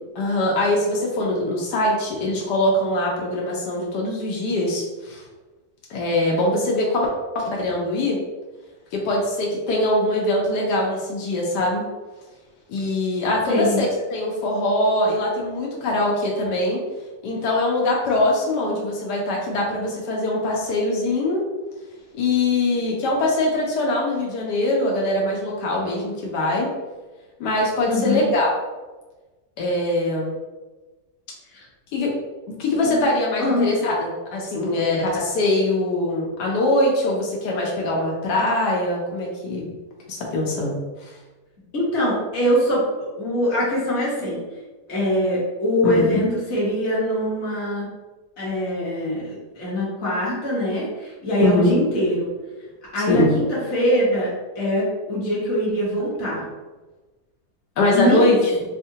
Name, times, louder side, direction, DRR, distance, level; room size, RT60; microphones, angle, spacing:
voice 1, 0.2-5.2 5.9-7.1 7.3-8.2 8.9-11.8 12.7-16.8 17.2-21.5 22.1-26.7 27.4-28.5 29.6-30.4 31.9-32.1 32.6-39.7 40.1-40.8 45.8-46.2 51.4-51.7 53.1-53.4 57.8-58.6, left 1 dB, 85° left, -2 dB, 1.3 m, -22 dB
voice 2, 13.5-13.8 27.8-28.2 31.5-31.7 32.8-33.0 33.4-33.7 41.7-44.4 44.9-47.9 48.4-52.3 52.9-56.4 57.9-58.4, equal, 45° left, -7 dB, 1.4 m, -23 dB
4.5 x 2.1 x 2.7 m, 1.2 s
omnidirectional pair, 1.8 m